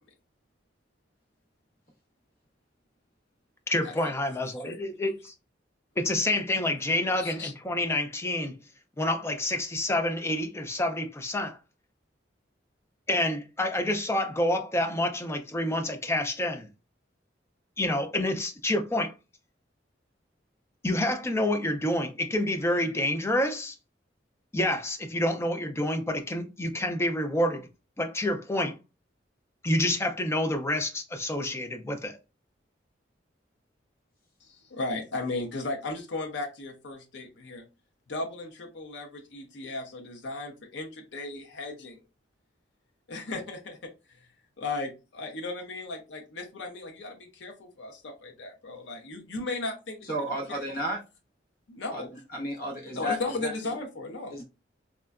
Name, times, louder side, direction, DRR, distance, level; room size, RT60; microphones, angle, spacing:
voice 1, 3.7-5.3 6.0-8.6 9.0-11.6 13.1-16.7 17.8-19.1 20.8-23.8 24.5-27.7 28.0-28.7 29.6-32.2, left 1 dB, 15° left, 0.3 m, -28 dB
voice 2, 7.2-7.5 34.4-37.6 38.1-42.0 43.1-44.2 44.6-50.8 51.7-52.1 52.9-54.4, left 2 dB, 70° left, 0.6 m, -36 dB
voice 3, 50.1-51.0 51.9-52.0 52.3-53.2 53.4-53.5 54.3-54.4, equal, 50° left, 1.0 m, -32 dB
3.6 x 2.1 x 2.3 m
head